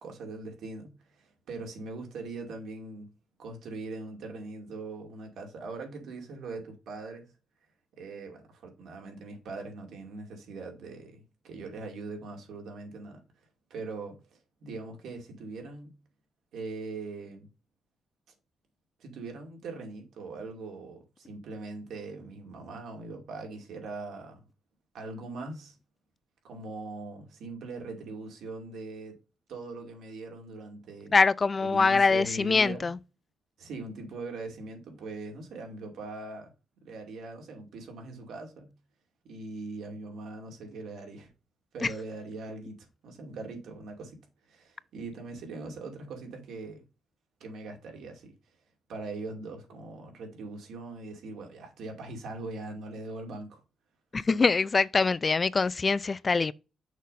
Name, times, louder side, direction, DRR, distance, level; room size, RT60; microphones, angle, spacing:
voice 1, 0.0-3.1 3.4-7.3 8.0-13.2 13.7-16.0 16.5-17.5 19.0-24.4 24.9-25.8 26.4-29.2 29.5-31.1 31.6-32.9 33.6-36.5 36.8-38.7 39.2-41.3 41.7-44.2 44.5-46.8 47.4-48.3 48.9-53.6 54.1-54.2, right 3 dB, 80° right, 2.4 m, -41 dB
voice 2, 31.1-33.0 54.1-56.5, left 4 dB, 35° left, 0.4 m, -24 dB
6.3 x 4.0 x 5.2 m
cardioid pair, 80°, 0 cm